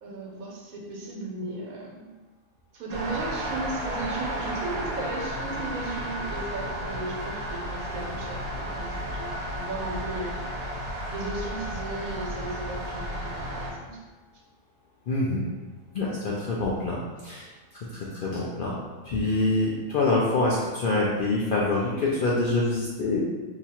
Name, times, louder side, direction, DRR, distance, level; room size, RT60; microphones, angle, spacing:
voice 1, 0.0-2.0 2.7-10.3 11.1-14.0, right 2 dB, 90° right, -2 dB, 1.2 m, -36 dB
sound 1, 2.9-13.7, right 1 dB, 55° right, 0.9 m, -33 dB
voice 2, 15.1-15.4 15.9-17.5 17.7-18.8 19.0-23.2, left 2 dB, 70° left, -5 dB, 0.5 m, -26 dB
2.9 x 2.4 x 4.2 m, 1.3 s
omnidirectional pair, 1.4 m